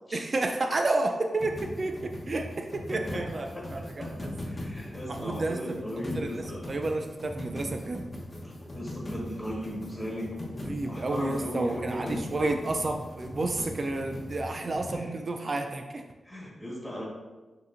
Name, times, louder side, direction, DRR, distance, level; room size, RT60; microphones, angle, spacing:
voice 1, 0.1-4.3 5.1-5.8 6.1-6.4 6.7-8.1 10.6-16.0, right 2 dB, 50° right, 4 dB, 0.3 m, -31 dB
sound 1, 1.4-14.9, left 1 dB, 35° left, 1.0 m, -40 dB
voice 2, 4.4-6.6 8.7-12.3 14.9-15.1 16.2-17.0, equal, ahead, -5 dB, 1.4 m, -36 dB
6.4 x 2.8 x 2.5 m, 1.2 s
cardioid pair, 70°, 0 cm